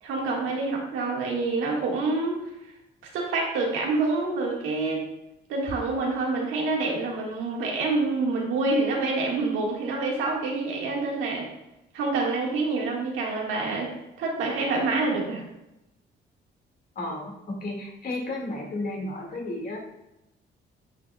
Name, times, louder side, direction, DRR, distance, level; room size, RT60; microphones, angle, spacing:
voice 1, 0.0-2.4 3.1-5.0 5.5-11.4 11.9-13.9 14.2-15.4, right 3 dB, 90° right, -2 dB, 1.9 m, -27 dB
voice 2, 17.0-19.8, left 2 dB, 50° left, -1 dB, 2.2 m, -33 dB
8.8 x 6.6 x 2.4 m, 0.93 s
cardioid pair, 90°, 20 cm